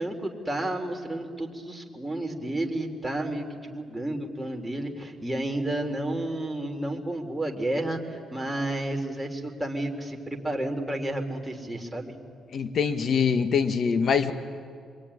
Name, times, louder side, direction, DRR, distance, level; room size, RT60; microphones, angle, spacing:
voice 1, 0.0-12.2, right 1 dB, 5° right, 1 dB, 3.6 m, -31 dB
voice 2, 12.5-14.3, left 6 dB, 55° left, 9 dB, 1.6 m, -24 dB
26.0 x 23.0 x 10.0 m, 2.2 s
cardioid pair, 90°, 0 cm